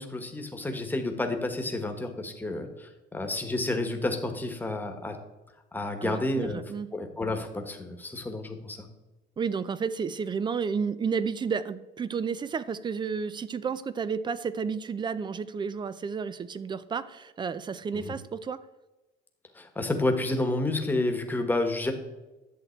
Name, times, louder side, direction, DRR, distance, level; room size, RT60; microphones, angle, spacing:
voice 1, 0.0-5.2 5.7-6.6 6.9-8.9 17.9-18.1 19.5-21.9, left 2 dB, 10° left, 5 dB, 1.4 m, -30 dB
voice 2, 6.0-6.9 9.4-18.6, right 6 dB, 25° right, 15 dB, 0.5 m, -31 dB
11.0 x 7.7 x 4.5 m, 1.1 s
cardioid pair, 140°, 18 cm